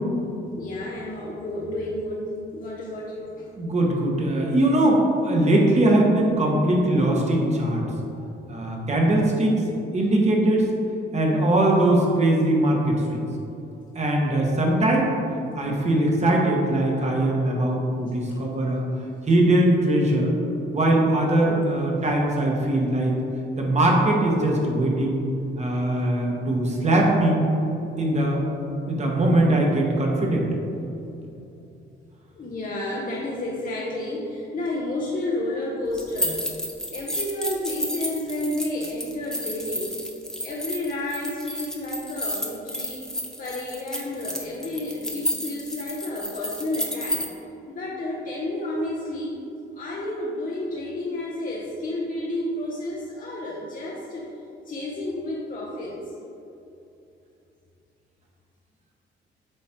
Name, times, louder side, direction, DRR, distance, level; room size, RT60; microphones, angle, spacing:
voice 1, 0.6-3.5 32.3-36.4 36.9-39.9 40.4-43.0 43.4-47.2 47.7-49.4 49.8-54.3 54.6-56.0, left 1 dB, 40° left, -4 dB, 0.9 m, -31 dB
voice 2, 3.5-7.8 8.5-9.6 9.9-10.7 11.1-13.2 13.9-15.1 15.5-18.8 19.3-20.3 20.7-23.2 23.6-25.2 25.6-27.4 28.0-28.4 28.9-30.5, right 1 dB, 35° right, -1 dB, 1.4 m, -21 dB
sound 1, 35.9-47.3, equal, 5° left, 0.8 m, -31 dB
8.1 x 3.2 x 4.4 m, 2.8 s
cardioid pair, 90°, 20 cm